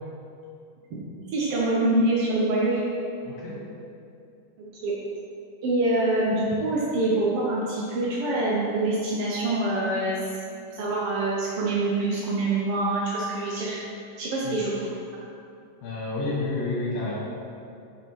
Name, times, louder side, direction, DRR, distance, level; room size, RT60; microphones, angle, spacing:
voice 1, 1.3-2.8 4.8-4.9 5.6-10.2 10.7-13.8 14.2-14.9, right 2 dB, 70° right, -5 dB, 1.3 m, -25 dB
voice 2, 3.2-3.7 14.4-14.6 15.8-17.2, left 2 dB, 85° left, -9 dB, 3.0 m, -30 dB
6.9 x 5.6 x 4.6 m, 2.5 s
omnidirectional pair, 3.8 m